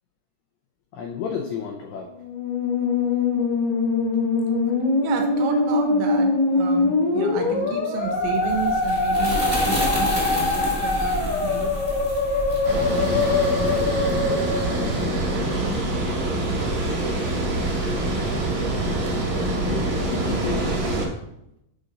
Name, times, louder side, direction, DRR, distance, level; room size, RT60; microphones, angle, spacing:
voice 1, 0.9-2.1 19.6-21.0, left 6 dB, 85° left, 1 dB, 2.3 m, -32 dB
Musical instrument, 2.2-15.5, left 3 dB, 65° left, 1.5 m, -23 dB
voice 2, 5.0-11.7 19.1-19.2, right 6 dB, 85° right, 4 dB, 2.8 m, -32 dB
sound 1, 8.2-14.8, right 1 dB, 5° left, 0.9 m, -30 dB
Water, 12.6-21.1, right 1 dB, 60° right, 1.6 m, -25 dB
7.1 x 5.1 x 3.9 m, 0.81 s
omnidirectional pair, 5.6 m